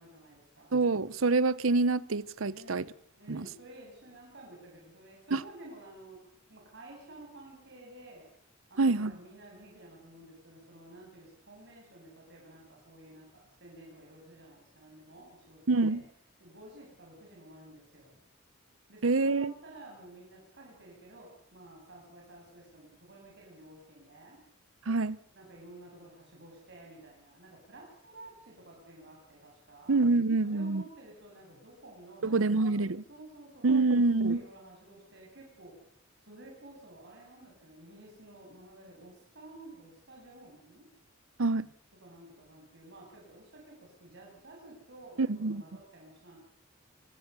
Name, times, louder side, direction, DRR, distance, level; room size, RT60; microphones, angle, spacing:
voice 1, 0.0-0.8 2.5-8.3 8.7-16.0 16.4-18.2 18.9-24.4 25.3-30.0 30.4-35.8 36.2-40.9 42.0-46.4, right 1 dB, 60° right, 7.5 m, -52 dB
voice 2, 0.7-2.9 3.3-3.5 5.3-5.4 8.8-9.2 15.7-16.0 19.0-19.5 24.9-25.2 29.9-30.8 32.2-33.0 33.6-34.4 41.4-41.7 45.2-45.6, right 3 dB, 75° right, 0.8 m, -26 dB
25.5 x 19.0 x 6.9 m
head